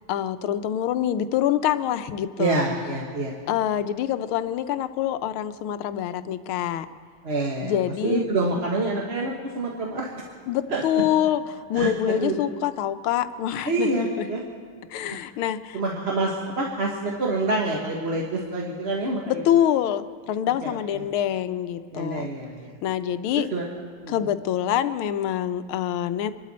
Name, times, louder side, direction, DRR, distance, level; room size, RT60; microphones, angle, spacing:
voice 1, 0.1-2.6 3.5-6.9 7.6-8.3 10.5-14.3 14.9-15.8 19.3-22.3 22.8-23.5 24.1-26.3, left 10 dB, 85° left, 11 dB, 1.5 m, -25 dB
voice 2, 2.4-3.3 7.2-7.8 8.0-10.3 10.7-10.8 11.7-12.4 13.6-14.4 15.0-15.2 15.7-19.4 20.6-21.1 21.9-22.7 23.3-23.7 24.0-24.1, right 2 dB, 35° right, -2 dB, 1.4 m, -27 dB
26.0 x 12.5 x 4.3 m, 2.1 s
omnidirectional pair, 2.3 m